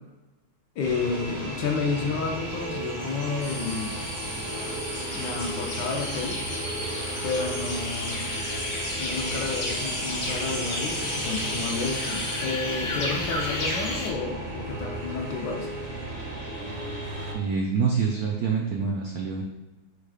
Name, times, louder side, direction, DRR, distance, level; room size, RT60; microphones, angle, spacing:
voice 1, 0.8-4.0 5.1-6.4 7.2-8.3 9.0-15.7, left 4 dB, 70° left, 2 dB, 1.2 m, -31 dB
sound 1, 0.8-17.3, right 1 dB, 45° right, 0.6 m, -35 dB
sound 2, 1.3-14.1, left 1 dB, 55° left, 0.7 m, -34 dB
sound 3, 3.4-12.4, left 1 dB, 15° left, 0.5 m, -38 dB
voice 2, 17.3-19.4, right 5 dB, 85° right, 0 dB, 0.8 m, -26 dB
4.7 x 2.3 x 4.8 m, 1.1 s
omnidirectional pair, 2.2 m